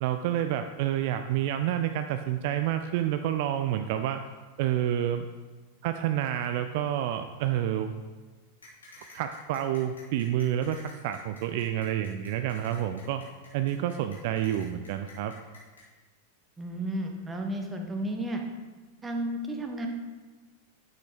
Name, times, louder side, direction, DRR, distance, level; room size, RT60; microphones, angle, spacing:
voice 1, 0.0-4.3 4.6-5.3 5.8-7.9 9.1-13.3 13.5-15.3, right 11 dB, 50° right, 8 dB, 0.4 m, -29 dB
sound 1, 8.6-15.8, left 3 dB, 70° left, 2.7 m, -51 dB
voice 2, 16.6-18.4 19.0-19.9, right 1 dB, 15° right, 3 dB, 1.3 m, -32 dB
10.0 x 8.2 x 3.5 m, 1.3 s
figure-of-eight pair, 90°, 0 cm